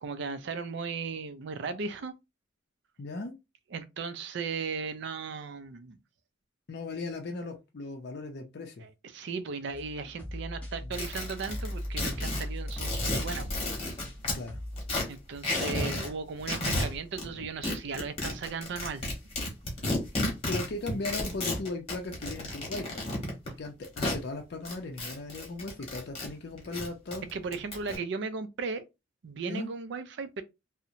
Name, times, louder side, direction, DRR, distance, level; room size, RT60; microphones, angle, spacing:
voice 1, 0.0-2.1 3.7-6.0 8.8-13.5 15.1-19.0 27.3-28.8 29.2-30.4, right 4 dB, 60° right, 0.4 m, -36 dB
voice 2, 3.0-3.3 6.7-8.9 10.8-11.0 14.3-14.6 17.2-17.5 20.5-23.1 23.6-27.3 29.5-29.7, left 2 dB, 55° left, 0.5 m, -37 dB
sound 1, 9.7-14.2 14.5-14.9, equal, 5° left, 0.6 m, -38 dB
sound 2, 10.9-14.4 14.8-16.1 16.4-17.3 17.6-24.2 24.6-26.3 26.6-28.0, left 2 dB, 30° left, 1.0 m, -32 dB
2.8 x 2.0 x 2.5 m
head